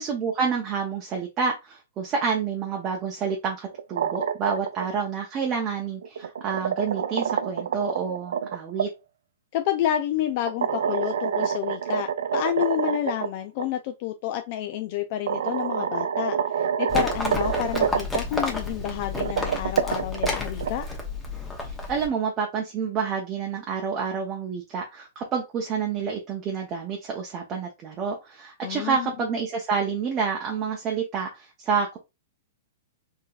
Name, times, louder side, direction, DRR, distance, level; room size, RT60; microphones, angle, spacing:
voice 1, 0.0-8.9 21.9-32.0, right 6 dB, 30° right, 0.6 m, -28 dB
sound 1, 3.7-4.9 6.0-8.9 10.5-13.3 13.6-13.7 14.7-14.8 15.3-18.2 19.0-20.7, right 8 dB, 75° right, 0.3 m, -27 dB
voice 2, 9.5-20.9 28.6-29.1, left 11 dB, 45° left, 0.3 m, -29 dB
Livestock farm animals working animals, 16.9-22.1, left 3 dB, 10° left, 0.8 m, -31 dB
3.7 x 2.7 x 2.3 m
hypercardioid pair, 135°, 0 cm